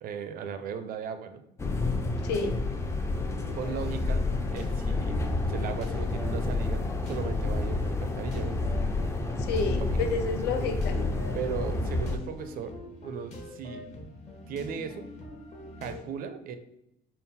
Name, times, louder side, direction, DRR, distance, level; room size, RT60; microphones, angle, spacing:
voice 1, 0.0-1.4 3.5-5.2 5.5-8.6 9.9-10.0 11.3-12.7 13.0-13.9 14.5-15.1 15.8-16.6, right 7 dB, 60° right, 10 dB, 0.4 m, -37 dB
sound 1, 1.6-12.2, left 2 dB, 15° left, 0.3 m, -29 dB
voice 2, 2.2-2.5 9.4-11.2, left 4 dB, 75° left, 6 dB, 0.6 m, -30 dB
sound 2, 3.5-16.0, left 1 dB, 40° left, 0.9 m, -44 dB
3.7 x 2.1 x 4.0 m, 0.82 s
cardioid pair, 110°, 17 cm